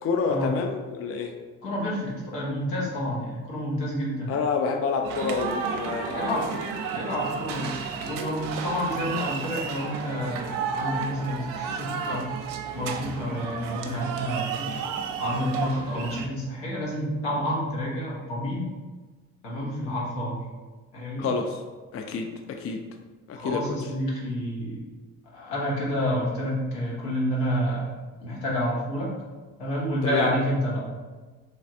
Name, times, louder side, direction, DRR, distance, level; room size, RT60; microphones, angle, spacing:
voice 1, 0.0-1.3 4.3-6.4 21.2-21.6 21.9-22.8 23.3-23.8 30.0-30.3, left 5 dB, 40° left, 4 dB, 0.4 m, -28 dB
voice 2, 1.6-4.3 6.1-6.5 6.9-7.7 8.0-12.3 12.7-14.7 15.2-18.7 19.4-20.4 20.9-21.3 23.3-24.8 25.3-27.8 28.2-29.1 29.6-30.8, equal, 85° left, -5 dB, 1.2 m, -29 dB
sound 1, 5.0-16.3, right 6 dB, 60° right, 0.5 m, -32 dB
3.3 x 3.1 x 2.7 m, 1.3 s
hypercardioid pair, 55°, 38 cm